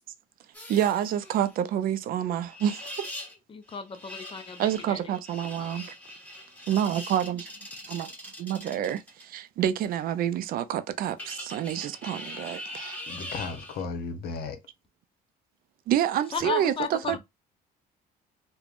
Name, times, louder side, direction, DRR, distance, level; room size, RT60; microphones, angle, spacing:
sound 1, 0.5-1.6 2.5-3.3 3.7-9.2 11.2-13.8 16.1-16.4, left 1 dB, 10° left, 1.3 m, -42 dB
voice 1, 0.7-3.1 4.6-5.9 6.7-7.5 7.9-13.0 15.9-17.2, right 10 dB, 60° right, 0.4 m, -28 dB
voice 2, 3.5-5.0 5.6-5.8 16.3-17.2, left 6 dB, 30° left, 0.5 m, -34 dB
voice 3, 13.1-14.6 17.0-17.2, left 4 dB, 70° left, 0.8 m, -35 dB
3.3 x 2.1 x 2.5 m
cardioid pair, 110°, 17 cm